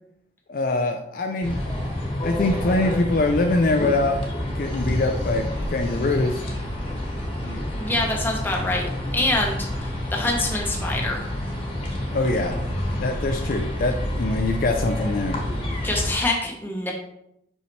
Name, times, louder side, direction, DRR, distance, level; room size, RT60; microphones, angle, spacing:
voice 1, 0.5-1.6 2.2-4.2 4.6-5.4 5.7-6.4 12.1-12.6 13.0-15.4, left 2 dB, 50° left, 4 dB, 0.4 m, -23 dB
sound 1, 1.4-16.1, left 1 dB, 30° left, 1.3 m, -28 dB
voice 2, 7.4-8.9 9.1-11.2 15.8-16.9, left 2 dB, 10° left, -1 dB, 1.0 m, -25 dB
5.6 x 5.6 x 3.1 m, 0.78 s
head